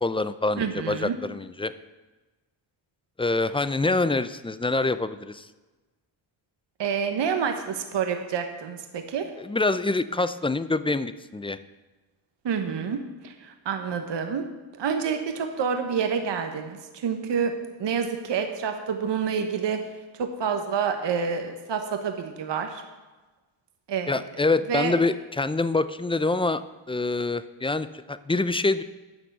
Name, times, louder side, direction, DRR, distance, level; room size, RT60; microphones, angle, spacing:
voice 1, 0.0-1.7 3.2-5.5 9.4-11.6 24.1-26.6 26.9-28.8, left 3 dB, 10° left, 14 dB, 0.5 m, -25 dB
voice 2, 0.6-1.1 6.8-9.3 12.4-14.5 14.7-19.8 20.1-22.8 23.9-24.2 24.7-24.9, right 6 dB, 55° right, 6 dB, 1.2 m, -28 dB
10.5 x 6.0 x 8.0 m, 1.2 s
cardioid pair, 60°, 50 cm